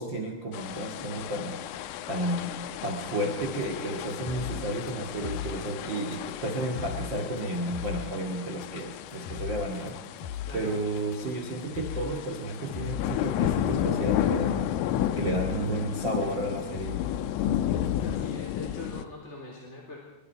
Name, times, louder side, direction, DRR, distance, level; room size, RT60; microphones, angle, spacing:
voice 1, 0.0-10.0 10.5-17.1, right 1 dB, 35° right, 2 dB, 1.9 m, -32 dB
sound 1, 0.5-19.1, left 11 dB, 85° left, 3.5 m, -33 dB
sound 2, 3.6-13.2 13.8-13.9 14.3-14.6 15.0-18.2, left 9 dB, 65° left, 2.7 m, -39 dB
voice 2, 10.5-10.8 18.0-20.0, left 2 dB, 15° left, -2 dB, 3.0 m, -43 dB
26.5 x 23.0 x 4.7 m, 1.0 s
omnidirectional pair, 5.7 m